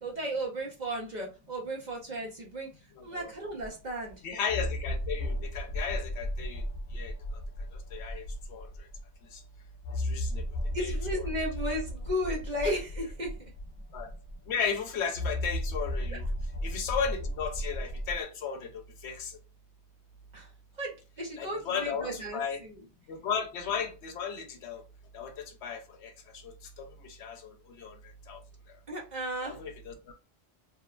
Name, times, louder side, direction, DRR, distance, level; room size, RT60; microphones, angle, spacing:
voice 1, 0.0-2.7 3.0-4.2 10.7-13.3 16.1-16.2 20.3-20.5 20.8-22.8 28.9-29.6, equal, 50° right, 0.7 m, -35 dB
voice 2, 3.0-3.3 4.2-6.6 6.9-7.1 7.9-8.2 8.5-8.7 9.3-9.4 10.0-10.4 10.8-11.3 13.9-14.1 14.5-16.3 16.6-19.3 21.4-22.6 23.1-24.8 25.1-26.1 26.8-27.9 28.3-28.4 29.4-30.1, left 6 dB, 90° left, 0.9 m, -35 dB
sound 1, 3.6-3.7 4.5-9.0 9.8-14.5 15.1-18.2, left 1 dB, 65° left, 0.9 m, -34 dB
2.9 x 2.1 x 2.3 m
omnidirectional pair, 1.1 m